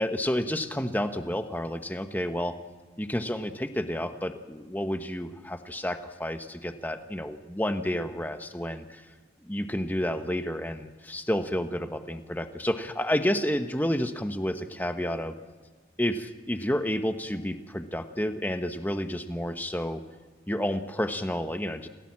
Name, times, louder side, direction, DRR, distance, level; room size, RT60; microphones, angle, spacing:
voice 1, 0.0-2.6 3.0-9.0 9.4-15.3 16.0-20.0 20.5-21.9, equal, 10° left, 7 dB, 1.2 m, -30 dB
28.0 x 17.5 x 7.5 m, 1.5 s
head